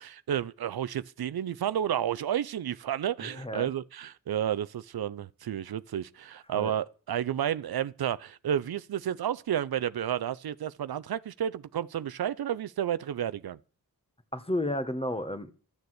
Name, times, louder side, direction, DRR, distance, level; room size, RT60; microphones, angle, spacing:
voice 1, 0.0-13.6, right 10 dB, 75° right, 0.5 m, -31 dB
voice 2, 3.2-3.7 6.5-6.7 14.3-15.5, left 1 dB, 15° left, 1.4 m, -32 dB
13.0 x 6.7 x 8.0 m
wide cardioid pair, 60°, 37 cm